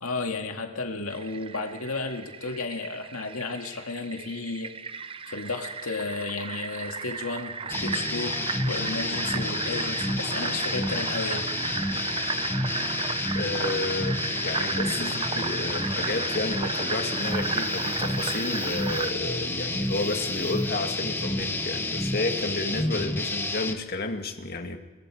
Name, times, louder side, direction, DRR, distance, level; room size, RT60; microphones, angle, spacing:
voice 1, 0.0-4.7 5.3-8.4 8.7-11.5 15.0-15.2, left 3 dB, 85° left, 3 dB, 2.1 m, -33 dB
Fill (with liquid), 1.1-19.1, right 5 dB, 25° right, 0.7 m, -34 dB
sound 1, 7.7-23.7, left 2 dB, 10° left, 1.1 m, -30 dB
voice 2, 13.3-24.8, left 2 dB, 45° left, 5 dB, 2.1 m, -31 dB
sound 2, 17.0-19.1 19.7-20.6, right 10 dB, 90° right, 6.9 m, -55 dB
29.5 x 22.0 x 4.9 m, 1.2 s
head